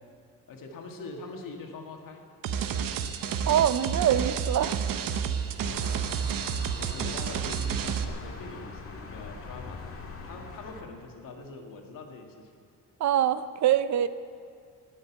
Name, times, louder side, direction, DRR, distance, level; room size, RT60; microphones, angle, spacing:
voice 1, 0.5-2.2 5.4-9.8 10.2-12.5, left 3 dB, 75° left, 2.0 m, -44 dB
sound 1, 2.4-8.0, right 7 dB, 80° right, 0.9 m, -30 dB
voice 2, 3.5-4.8 13.0-14.1, right 10 dB, 55° right, 0.6 m, -24 dB
sound 2, 5.6-10.8, left 3 dB, 40° left, 1.7 m, -42 dB
17.5 x 6.8 x 9.3 m
cardioid pair, 150°, 33 cm